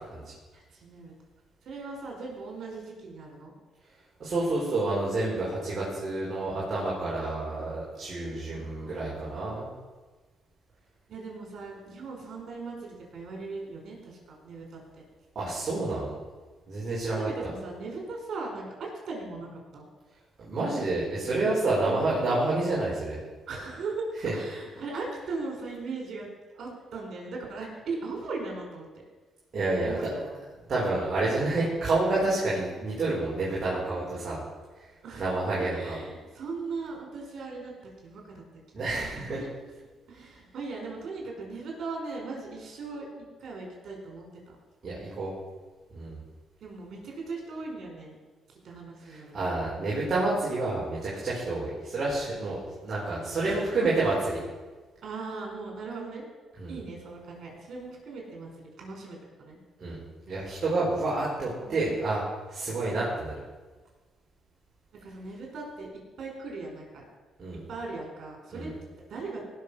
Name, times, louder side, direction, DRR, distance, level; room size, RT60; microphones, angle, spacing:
voice 1, 0.5-1.1 1.6-3.5 8.4-9.4 11.1-15.0 17.1-19.9 21.8-22.2 23.5-24.0 24.3-26.3 26.5-28.9 29.8-30.4 33.7-34.4 35.0-35.3 35.7-37.7 38.0-38.4 38.8-38.9 39.2-39.5 40.1-43.1 43.4-44.6 46.6-48.2 48.5-49.3 53.4-53.9 55.0-56.2 56.7-59.6 61.4-62.1 64.9-67.0 67.7-68.7 69.1-69.4, right 3 dB, 65° right, 0 dB, 5.0 m, -39 dB
voice 2, 4.2-9.7 15.3-16.2 16.7-17.5 20.4-23.2 24.2-24.3 29.5-30.1 30.7-34.4 35.2-36.0 38.7-39.4 44.8-45.3 45.9-46.2 49.1-54.1 56.6-56.7 59.8-60.0 60.3-63.3 67.4-67.6 68.5-68.7, right 2 dB, 45° right, -7 dB, 4.6 m, -29 dB
18.5 x 6.7 x 5.8 m, 1.3 s
cardioid pair, 90°, 0 cm